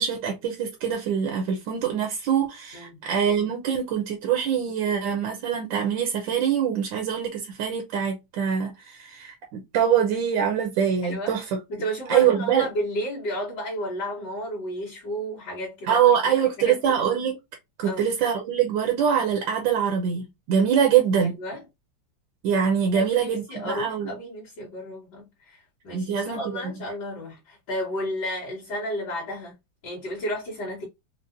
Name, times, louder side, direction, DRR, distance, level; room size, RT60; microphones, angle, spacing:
voice 1, 0.0-11.6 12.1-12.6 15.9-17.4 17.8-21.3 22.4-24.1 25.9-26.7, right 8 dB, 80° right, 1.4 m, -24 dB
voice 2, 11.0-11.4 11.7-16.9 17.8-18.1 21.2-21.6 22.9-29.5 29.8-30.9, equal, 60° left, 2.2 m, -32 dB
5.3 x 2.1 x 2.5 m
omnidirectional pair, 2.1 m